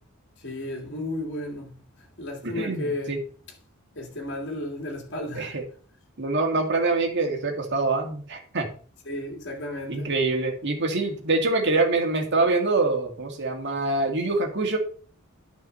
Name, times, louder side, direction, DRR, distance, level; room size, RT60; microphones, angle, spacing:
voice 1, 0.4-1.8 2.2-3.2 4.0-5.5 9.1-10.1, left 1 dB, 55° left, 2.8 m, -33 dB
voice 2, 2.4-3.2 5.3-5.6 6.2-8.7 9.9-14.8, right 3 dB, 55° right, 2.1 m, -25 dB
9.4 x 5.1 x 6.8 m
head